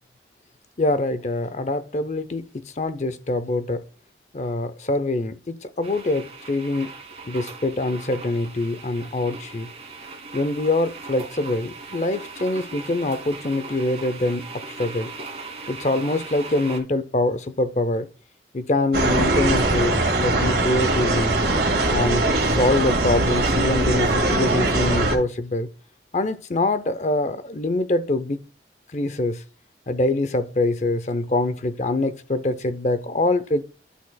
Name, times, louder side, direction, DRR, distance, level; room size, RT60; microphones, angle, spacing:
voice 1, 0.8-3.8 4.3-6.9 7.3-9.7 10.3-14.5 14.8-15.1 15.7-18.1 18.5-21.4 21.9-25.7 26.1-28.4 28.9-29.4 29.9-33.6, left 2 dB, 40° left, 0.6 m, -24 dB
sound 1, 5.8-16.8, right 3 dB, 35° right, 2.0 m, -39 dB
sound 2, 18.9-25.2, right 2 dB, 65° right, 2.2 m, -21 dB
11.0 x 6.2 x 2.3 m
head